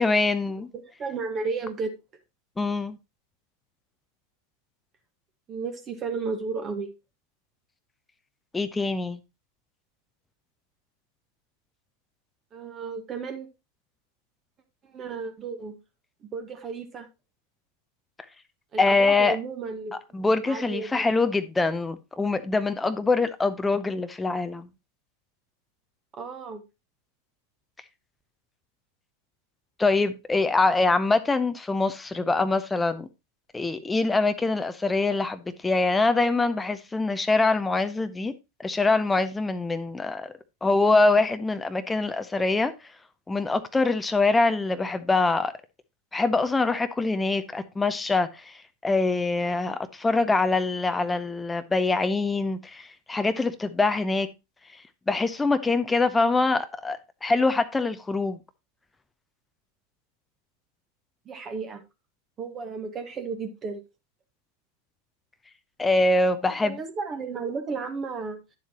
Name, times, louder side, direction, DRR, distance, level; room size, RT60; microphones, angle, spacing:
voice 1, 0.0-0.7 2.6-3.0 8.5-9.2 18.8-19.4 20.1-24.7 29.8-33.1 33.5-38.3 38.6-40.3 40.6-42.7 43.3-45.5 46.1-54.3 55.1-58.4 65.8-66.8, left 3 dB, 10° left, 0.7 m, -24 dB
voice 2, 0.7-2.0 5.5-6.9 12.5-13.5 14.8-15.8 16.2-17.1 18.7-21.1 26.2-26.6 61.2-61.8 62.4-63.8 66.4-68.4, right 4 dB, 25° right, 1.4 m, -33 dB
10.0 x 7.3 x 2.8 m
figure-of-eight pair, 90°, 0 cm